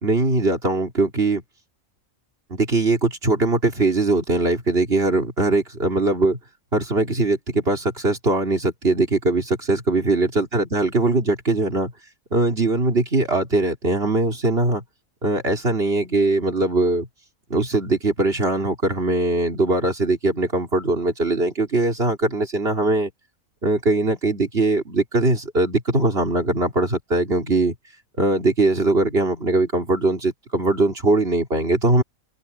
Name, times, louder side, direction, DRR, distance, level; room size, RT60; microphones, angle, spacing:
voice 1, 0.0-1.4 2.5-6.4 6.7-11.9 12.3-14.8 15.2-17.1 17.5-23.1 23.6-27.7 28.2-32.0, right 2 dB, 45° right, 3.5 m, -21 dB
omnidirectional pair, 1.4 m